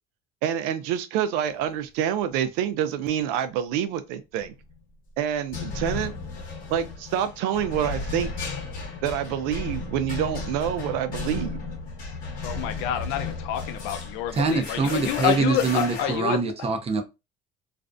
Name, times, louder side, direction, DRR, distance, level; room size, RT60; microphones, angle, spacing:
voice 1, 0.4-4.5 5.2-6.1 6.7-8.3 9.0-11.6, right 9 dB, 90° right, 0.4 m, -27 dB
sound 1, 4.4-4.7 5.5-16.2, left 4 dB, 45° left, 1.0 m, -34 dB
voice 2, 12.4-16.4, left 10 dB, 85° left, 0.5 m, -28 dB
voice 3, 14.3-17.0, right 4 dB, 30° right, 0.5 m, -24 dB
2.5 x 2.1 x 2.4 m
supercardioid pair, 100°, 20 cm